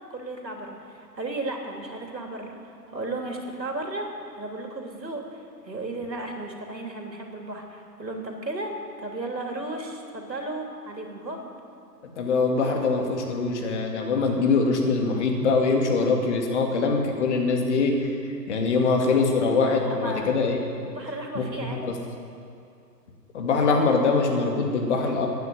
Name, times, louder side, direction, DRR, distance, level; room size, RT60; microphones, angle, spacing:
voice 1, 0.1-4.1 4.4-11.5 19.8-20.3 20.8-21.8, right 2 dB, 85° right, 1 dB, 3.0 m, -34 dB
voice 2, 12.0-18.1 18.5-20.6 21.3-21.9 23.3-25.3, left 4 dB, 45° left, 1 dB, 2.6 m, -23 dB
15.0 x 9.6 x 8.9 m, 2.5 s
figure-of-eight pair, 130°, 49 cm